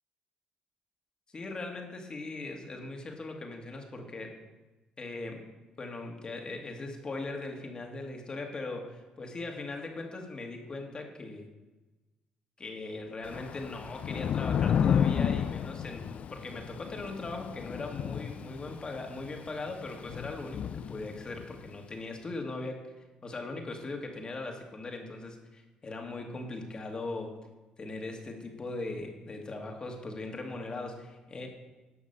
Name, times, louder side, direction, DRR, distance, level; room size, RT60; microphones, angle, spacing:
voice 1, 1.3-4.4 5.0-5.4 5.8-11.5 12.6-22.9 23.2-27.4 27.8-31.5, left 2 dB, 35° left, 2 dB, 2.0 m, -39 dB
Thunder / Rain, 13.2-21.6, left 8 dB, 55° left, 0.3 m, -32 dB
11.5 x 5.8 x 6.8 m, 1.1 s
cardioid pair, 95°, 3 cm